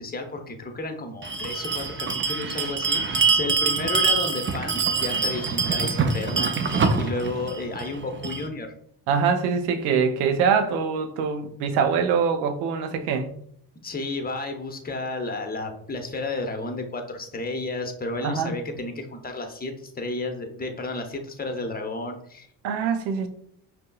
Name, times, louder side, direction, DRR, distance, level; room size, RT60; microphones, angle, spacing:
voice 1, 0.0-8.7 13.8-22.5, left 2 dB, 20° left, 0.8 m, -32 dB
Bell, 1.2-8.5, right 4 dB, 25° right, 0.4 m, -25 dB
voice 2, 9.1-13.3 18.2-18.5 22.6-23.3, right 6 dB, 85° right, 0.6 m, -24 dB
5.2 x 2.1 x 2.3 m
hypercardioid pair, 50°, 50 cm